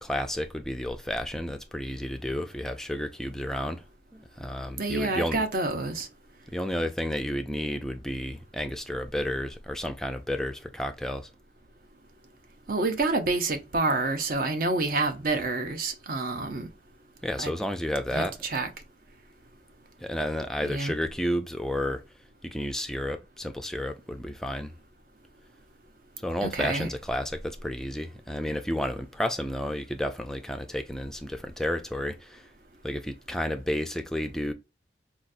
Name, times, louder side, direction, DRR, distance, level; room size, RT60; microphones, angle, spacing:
voice 1, 0.0-3.8 4.1-5.4 6.5-11.3 17.2-18.4 20.0-22.0 22.4-24.7 26.2-32.5 32.8-34.5, equal, 5° left, 0.3 m, -31 dB
voice 2, 4.8-6.1 12.7-16.7 17.4-17.5 18.1-18.7 20.6-20.9 26.4-26.9, right 3 dB, 50° right, 0.6 m, -28 dB
4.0 x 2.3 x 2.5 m
head